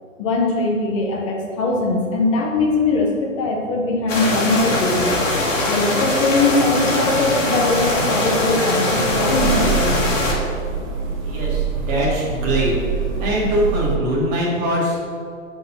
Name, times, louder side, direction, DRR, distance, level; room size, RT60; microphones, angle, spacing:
voice 1, 0.2-5.2 5.7-9.9, left 2 dB, 25° left, 0 dB, 0.8 m, -21 dB
sound 1, 4.1-10.3, left 1 dB, 65° left, 1.9 m, -21 dB
sound 2, 7.7-14.0, right 5 dB, 35° right, 1.2 m, -26 dB
voice 2, 11.2-12.7 13.2-15.0, equal, 20° right, -6 dB, 1.5 m, -22 dB
6.4 x 4.6 x 5.7 m, 2.3 s
hypercardioid pair, 165°, 40 cm